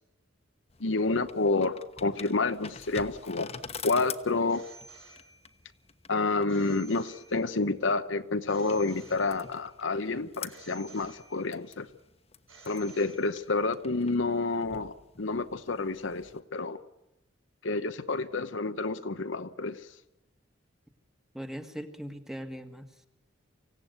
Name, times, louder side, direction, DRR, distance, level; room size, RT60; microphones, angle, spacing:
sound 1, 0.7-16.4, left 6 dB, 30° left, 1.1 m, -47 dB
voice 1, 0.8-3.5 3.8-4.7 6.1-11.9 12.7-16.8 17.6-19.8, left 3 dB, 65° left, 10 dB, 1.0 m, -29 dB
Telephone, 4.5-5.7 6.5-7.7 8.5-9.7 10.5-11.7 12.5-13.7, right 3 dB, 85° right, 4.5 m, -53 dB
voice 2, 21.3-23.1, equal, ahead, 6 dB, 1.7 m, -40 dB
25.0 x 16.5 x 9.3 m, 0.96 s
head